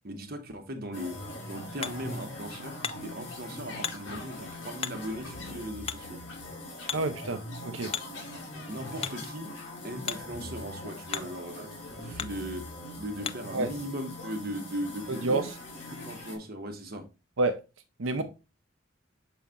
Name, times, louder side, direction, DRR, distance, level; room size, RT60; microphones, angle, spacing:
voice 1, 0.0-1.2 1.5-6.2 8.3-9.5 9.8-11.7 12.0-12.7 13.0-15.4 16.0-17.1 18.2-18.3, equal, 50° right, 1.2 m, -38 dB
sound 1, 0.9-16.4, left 1 dB, 70° left, 2.8 m, -42 dB
Hammer, 0.9-13.6, left 8 dB, 30° left, 0.3 m, -42 dB
voice 2, 6.9-7.9 13.5-13.7 15.1-15.5 17.4-17.6 18.0-18.2, right 2 dB, 85° right, 0.8 m, -28 dB
6.9 x 4.2 x 3.7 m
head